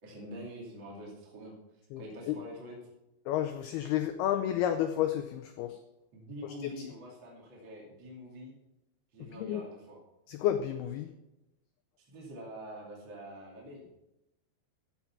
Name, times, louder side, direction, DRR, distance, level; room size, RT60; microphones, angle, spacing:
voice 1, 0.0-1.5 2.0-2.8 6.1-8.5 9.1-10.0 12.1-13.9, equal, 30° right, -3 dB, 2.7 m, -45 dB
voice 2, 3.3-5.8 6.8-6.9 9.4-9.6 10.3-11.1, left 11 dB, 85° left, 7 dB, 2.2 m, -31 dB
14.5 x 6.1 x 5.8 m, 0.93 s
omnidirectional pair, 5.2 m